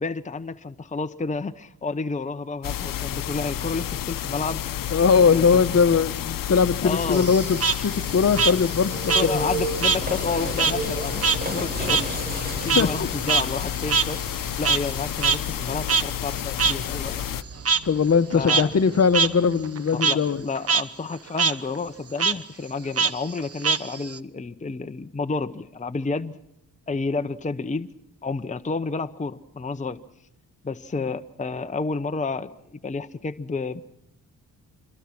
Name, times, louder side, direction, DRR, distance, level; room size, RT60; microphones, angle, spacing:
voice 1, 0.0-4.6 5.1-5.7 6.8-7.3 9.1-17.4 18.3-18.7 19.9-26.4 26.9-27.9 28.2-30.0 30.6-33.8, left 4 dB, 20° left, 0.9 m, -30 dB
sound 1, 2.6-17.4, left 11 dB, 70° left, 0.9 m, -31 dB
voice 2, 4.9-9.4 12.7-12.9 17.9-20.4, left 6 dB, 45° left, 1.2 m, -20 dB
Frog, 7.1-10.0 10.3-15.0 15.2-15.4 15.9-16.0 16.6-16.7 17.6-17.8 18.3-18.6 19.1-19.3 19.6-20.1 20.5-20.8 21.1-21.5 22.2-22.3 23.0-24.2, right 5 dB, 45° right, 1.1 m, -23 dB
sound 2, 8.1-19.6, right 2 dB, 25° right, 7.3 m, -35 dB
27.0 x 22.5 x 6.1 m
cardioid pair, 85°, 34 cm